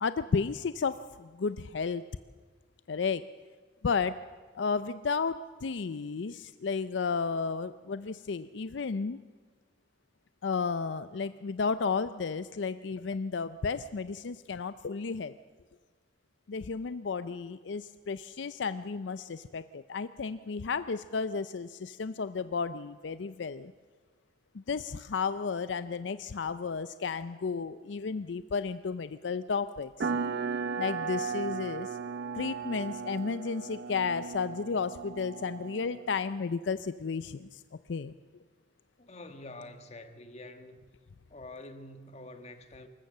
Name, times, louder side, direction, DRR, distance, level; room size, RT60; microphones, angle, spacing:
voice 1, 0.0-2.0 2.9-3.3 3.8-4.2 4.5-9.2 10.4-15.3 16.5-23.7 24.5-30.1 30.8-31.9 32.3-37.6 37.9-38.1, left 5 dB, 75° left, 13 dB, 0.5 m, -33 dB
sound 1, 30.0-36.2, right 5 dB, 65° right, 0.6 m, -36 dB
voice 2, 39.0-40.8 41.3-42.9, left 2 dB, 35° left, 7 dB, 1.5 m, -46 dB
24.5 x 14.0 x 7.7 m, 1.4 s
head